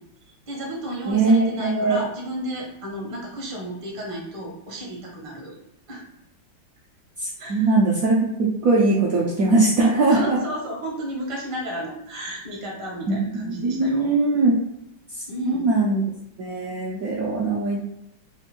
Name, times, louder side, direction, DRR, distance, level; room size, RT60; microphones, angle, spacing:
voice 1, 0.5-5.5 5.9-6.0 7.4-7.7 10.1-14.1 15.3-15.7, right 1 dB, 25° right, -2 dB, 0.7 m, -33 dB
voice 2, 1.1-2.0 7.2-10.4 13.1-14.6 15.1-16.0 16.4-18.0, right 3 dB, 65° right, -4 dB, 0.9 m, -21 dB
3.6 x 2.5 x 4.3 m, 0.82 s
omnidirectional pair, 2.1 m